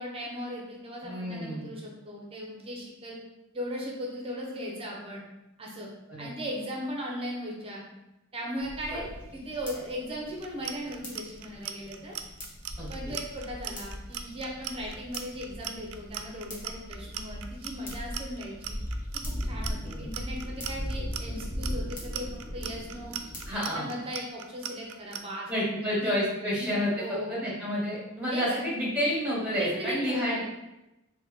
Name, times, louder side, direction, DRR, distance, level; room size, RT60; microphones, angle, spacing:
voice 1, 0.0-3.2 3.5-5.2 5.6-5.9 6.2-7.8 8.3-9.0 9.3-12.1 12.9-18.8 19.1-23.1 23.5-25.5 25.8-26.1 26.5-27.4 28.3-28.6 29.5-30.4, equal, 25° right, -2 dB, 0.6 m, -38 dB
voice 2, 1.0-1.7 6.1-6.3 8.9-9.1 12.8-13.1 19.8-19.9 23.5-23.9 25.5-30.5, equal, 5° right, -7 dB, 1.4 m, -30 dB
sound 1, 8.6-23.5, equal, 40° left, 1.0 m, -39 dB
Clock, 10.4-25.2, right 10 dB, 90° right, 0.4 m, -38 dB
4.1 x 2.2 x 3.5 m, 0.96 s
head